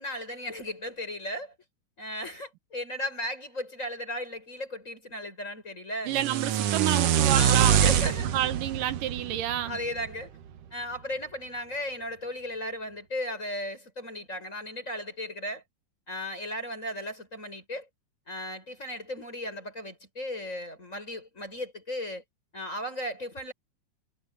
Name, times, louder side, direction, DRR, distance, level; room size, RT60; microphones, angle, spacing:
voice 1, 0.0-1.5 2.0-6.1 7.3-8.3 9.6-10.3 10.7-15.6 16.1-17.9 18.3-22.2 22.5-23.5, left 1 dB, 20° left, 7.7 m, -36 dB
sound 1, 6.1-10.2, right 9 dB, 60° right, 1.9 m, -25 dB
voice 2, 6.1-9.8, right 12 dB, 85° right, 2.7 m, -29 dB
omnidirectional pair, 3.7 m